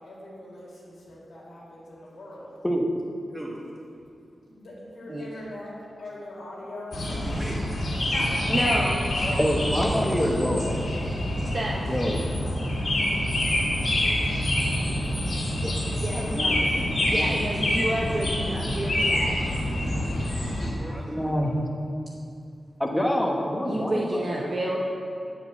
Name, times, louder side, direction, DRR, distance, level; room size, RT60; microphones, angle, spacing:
voice 1, 0.0-2.5 4.4-5.7 6.0-7.3 8.1-9.5 13.6-16.5 18.5-19.0 19.5-20.2, left 1 dB, 85° left, -7 dB, 2.2 m, -43 dB
sound 1, 6.9-20.7, left 1 dB, 55° left, 2.1 m, -26 dB
voice 2, 7.2-7.6 9.2-10.4 16.1-17.6 18.7-21.6, equal, 10° right, -5 dB, 1.6 m, -38 dB
voice 3, 8.5-9.0 11.5-11.8 16.0-16.6 17.1-19.4 23.6-24.8, right 1 dB, 40° right, -3 dB, 0.8 m, -29 dB
voice 4, 9.4-10.8 11.9-12.2 15.6-15.7 21.1-21.5 22.8-24.3, equal, 10° left, 0 dB, 1.0 m, -26 dB
8.0 x 4.8 x 6.9 m, 2.5 s
wide cardioid pair, 95°, 0 cm